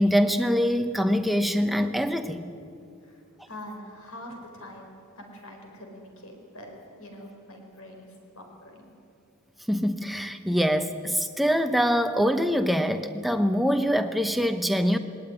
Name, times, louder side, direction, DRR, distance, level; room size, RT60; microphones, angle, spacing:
voice 1, 0.0-2.5 9.7-15.0, equal, ahead, 7 dB, 0.9 m, -24 dB
voice 2, 3.0-8.9, left 1 dB, 70° left, 2 dB, 4.7 m, -44 dB
20.5 x 18.5 x 9.9 m, 2.6 s
head